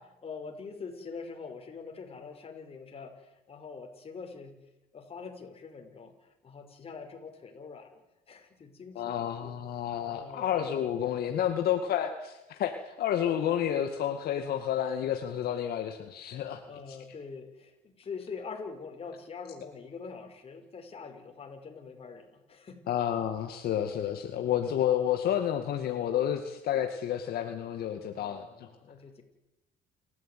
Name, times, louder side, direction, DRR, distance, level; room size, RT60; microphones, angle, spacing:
voice 1, 0.2-4.6 4.9-9.6 10.0-10.9 16.6-22.8 28.2-29.2, left 5 dB, 35° left, 4 dB, 5.7 m, -44 dB
voice 2, 9.0-16.6 16.9-17.0 22.9-28.7, left 10 dB, 65° left, 5 dB, 2.1 m, -30 dB
28.5 x 14.0 x 9.4 m, 0.91 s
cardioid pair, 110°, 17 cm